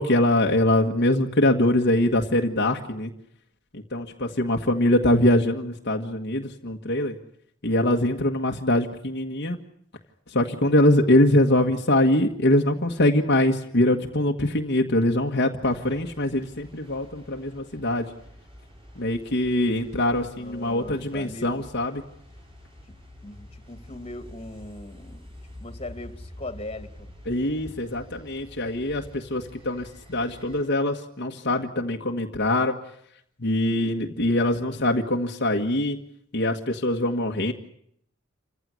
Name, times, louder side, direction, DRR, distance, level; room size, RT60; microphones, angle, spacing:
voice 1, 0.0-3.1 3.7-7.1 7.6-9.6 10.3-18.1 19.0-22.0 27.3-32.8 33.4-36.0 36.3-37.5, left 1 dB, 55° left, 1 dB, 1.6 m, -23 dB
sound 1, 15.7-30.6, left 1 dB, 25° right, 6.6 m, -47 dB
voice 2, 20.3-21.6 23.2-25.3 25.6-27.1, left 2 dB, 30° left, 9 dB, 2.5 m, -39 dB
28.5 x 16.0 x 9.8 m, 0.72 s
head